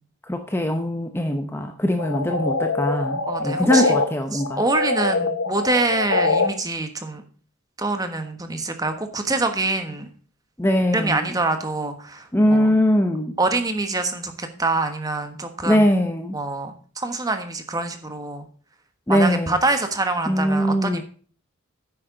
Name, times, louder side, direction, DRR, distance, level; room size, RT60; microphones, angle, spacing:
voice 1, 0.3-4.6 10.6-11.4 12.3-13.4 15.6-16.4 19.1-19.5 20.3-21.0, equal, 10° left, 6 dB, 0.7 m, -21 dB
sound 1, 2.0-4.1 4.4-6.5, left 3 dB, 60° left, 1.0 m, -23 dB
voice 2, 3.3-4.0 4.3-7.2 7.8-10.1 10.9-12.7 13.4-15.9 16.3-18.4 19.1-21.0, right 2 dB, 15° right, 7 dB, 1.3 m, -25 dB
10.0 x 8.7 x 3.8 m, 0.42 s
head